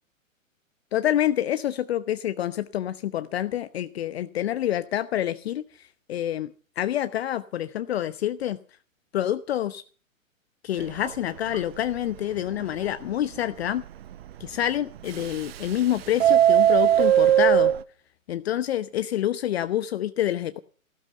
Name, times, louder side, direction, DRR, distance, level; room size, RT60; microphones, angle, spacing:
voice 1, 0.9-6.5 6.8-8.6 9.1-9.8 10.6-13.8 14.4-17.7 18.3-20.6, left 12 dB, 50° left, 13 dB, 0.9 m, -27 dB
Subway metro underground, 10.8-11.1 11.5-11.6 11.9-12.0 12.5-12.6 15.1-15.8 16.1-17.8, right 11 dB, 45° right, 1.0 m, -19 dB
15.5 x 13.5 x 6.7 m, 0.41 s
hypercardioid pair, 125°, 41 cm